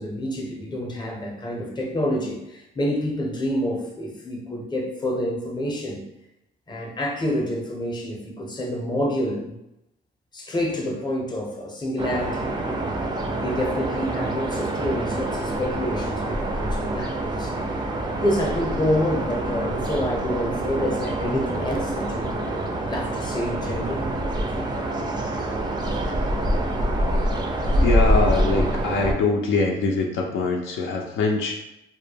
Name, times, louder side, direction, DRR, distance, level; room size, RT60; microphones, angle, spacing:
voice 1, 0.0-6.0 6.7-9.6 10.3-12.5 13.4-17.5 18.2-24.1, left 1 dB, 20° left, 0 dB, 0.6 m, -28 dB
sound 1, 12.0-29.1, right 1 dB, 20° right, 0.3 m, -26 dB
voice 2, 27.8-31.5, left 3 dB, 75° left, 1 dB, 0.4 m, -23 dB
2.2 x 2.0 x 3.2 m, 0.87 s
cardioid pair, 90°, 20 cm